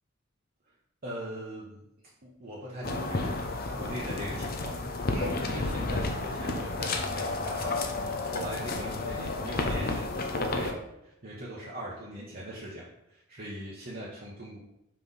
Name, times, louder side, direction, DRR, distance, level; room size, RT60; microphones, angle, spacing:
voice 1, 1.0-1.8 2.2-4.8 5.1-10.8 11.0-14.6, right 1 dB, 45° right, -6 dB, 1.2 m, -41 dB
sound 1, 2.8-10.7, left 2 dB, 45° left, 0.8 m, -31 dB
6.0 x 3.4 x 5.5 m, 0.85 s
head